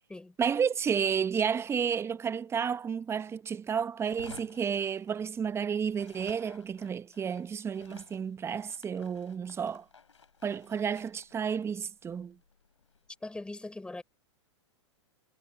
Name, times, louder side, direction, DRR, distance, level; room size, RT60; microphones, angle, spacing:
voice 1, 0.4-9.8 10.4-12.4, right 7 dB, 15° right, 1.0 m, -31 dB
sound 1, 4.0-5.6 5.9-13.1, left 5 dB, 80° left, 3.4 m, -55 dB
voice 2, 13.2-14.0, left 2 dB, 5° left, 5.7 m, -40 dB
figure-of-eight pair, 105°, 15 cm